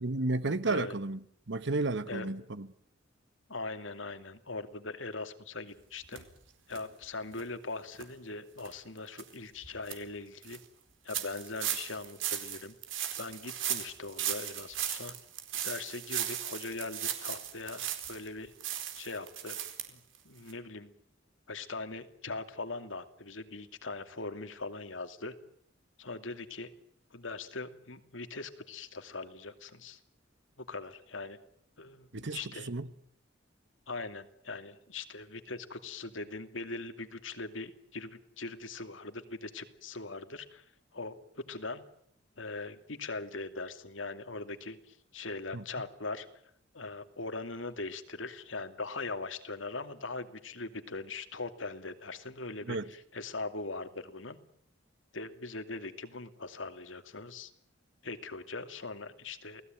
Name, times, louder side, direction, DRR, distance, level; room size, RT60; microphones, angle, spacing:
voice 1, 0.0-1.2 1.5-2.7 32.1-32.4 32.6-32.9 45.5-45.6 52.7-52.8, right 2 dB, 65° right, 1.2 m, -32 dB
voice 2, 0.6-0.9 2.1-2.3 3.5-6.3 6.7-10.6 11.0-12.7 13.2-15.1 15.6-18.5 18.9-19.6 19.9-20.9 21.5-25.3 26.0-26.7 27.1-30.0 30.6-31.4 31.8-32.7 33.9-40.6 40.9-41.8 42.4-46.3 46.7-54.4 55.1-57.5 58.0-59.6, left 3 dB, 80° left, 2.6 m, -41 dB
sound 1, 6.1-6.2 6.7-6.8 7.3-7.4 7.9-8.0 8.6-8.7 9.2-9.3 9.6-9.9 10.4-10.6 11.1-18.3 18.6-19.8 20.1-20.2 20.5-20.6, right 10 dB, 85° right, 4.4 m, -36 dB
29.0 x 18.5 x 9.2 m
head